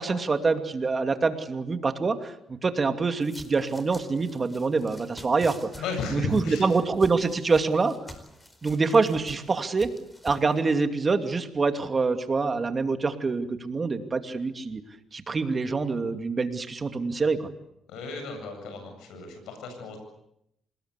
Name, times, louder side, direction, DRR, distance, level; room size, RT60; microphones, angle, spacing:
voice 1, 0.0-2.3 2.6-5.7 6.1-8.0 8.6-9.9 10.2-14.8 15.1-17.5, right 4 dB, 35° right, 7 dB, 2.5 m, -25 dB
sound 1, 3.2-10.6, equal, 10° left, 4.6 m, -46 dB
voice 2, 5.8-6.7 17.9-20.0, left 4 dB, 85° left, 5 dB, 7.9 m, -34 dB
26.5 x 20.0 x 8.2 m, 0.78 s
cardioid pair, 90°, 0 cm